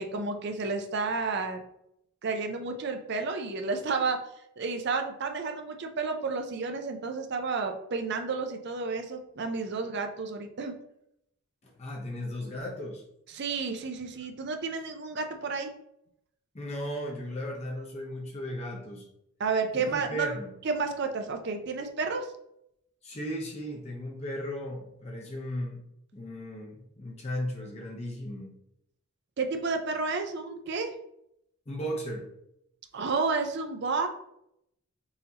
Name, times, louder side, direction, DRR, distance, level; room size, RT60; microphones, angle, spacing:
voice 1, 0.0-1.6 2.2-4.2 4.6-10.7 13.3-15.7 19.4-20.3 20.6-22.3 29.4-30.9 32.9-34.1, right 4 dB, 50° right, 5 dB, 0.5 m, -31 dB
voice 2, 11.6-13.0 16.5-19.1 19.7-20.5 23.0-25.8 26.1-28.5 31.7-32.3, equal, 30° left, 0 dB, 0.7 m, -36 dB
5.6 x 2.7 x 2.8 m, 0.77 s
head